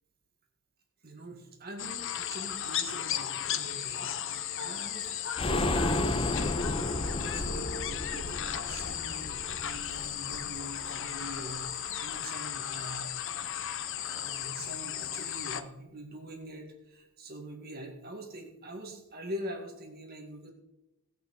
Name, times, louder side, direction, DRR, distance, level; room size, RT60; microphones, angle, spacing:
voice 1, 1.0-4.2 4.6-5.1 5.4-13.1 14.0-20.5, right 1 dB, 45° right, 2 dB, 1.9 m, -43 dB
sound 1, 1.8-15.6, left 10 dB, 60° left, 0.7 m, -35 dB
sound 2, 5.4-11.0 11.3-11.4 11.7-11.8, left 2 dB, 25° left, 0.6 m, -33 dB
17.0 x 5.8 x 5.6 m, 0.91 s
head